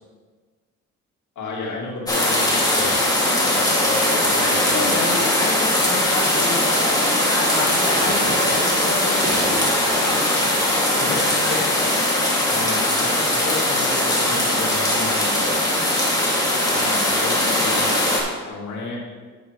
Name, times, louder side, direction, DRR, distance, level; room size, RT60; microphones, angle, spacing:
voice 1, 1.4-3.0 3.3-5.2 11.0-15.6 16.7-18.0 18.5-19.0, left 3 dB, 80° left, -3 dB, 2.2 m, -32 dB
sound 1, 2.1-18.2, left 1 dB, 10° left, 2.2 m, -20 dB
voice 2, 4.4-6.7 7.1-10.4, left 3 dB, 55° left, -5 dB, 1.8 m, -29 dB
sound 2, 7.5-12.1 12.7-12.8 13.1-13.2, right 2 dB, 30° right, 1.4 m, -34 dB
10.0 x 8.0 x 3.1 m, 1.4 s
cardioid pair, 90°, 30 cm